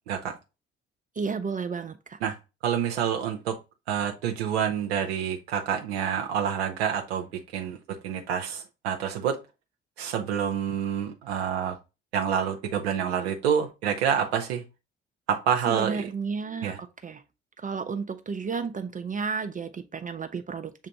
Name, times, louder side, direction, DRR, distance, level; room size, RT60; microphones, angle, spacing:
voice 1, 0.1-0.4 2.2-2.4 2.6-3.6 3.9-9.4 10.0-11.8 12.1-14.6 15.3-16.1 16.6-16.8, right 8 dB, 80° right, 0.5 m, -28 dB
voice 2, 1.2-2.2 15.6-17.2 17.6-20.9, right 5 dB, 25° right, 0.5 m, -32 dB
7.1 x 2.5 x 2.8 m
figure-of-eight pair, 45°, 31 cm